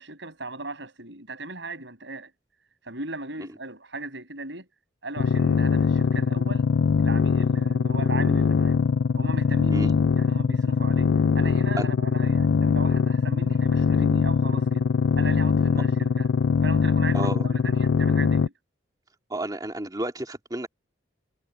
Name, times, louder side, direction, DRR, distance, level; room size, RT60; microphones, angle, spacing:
voice 1, 0.0-2.3 2.8-4.7 5.0-6.7 7.0-8.8 9.2-14.9 15.1-16.3 16.6-18.5, right 2 dB, 70° right, 7.4 m, -37 dB
sound 1, 5.2-18.5, left 5 dB, 65° left, 0.4 m, -22 dB
voice 2, 17.1-17.5 19.3-20.7, right 1 dB, 20° right, 2.5 m, -31 dB
head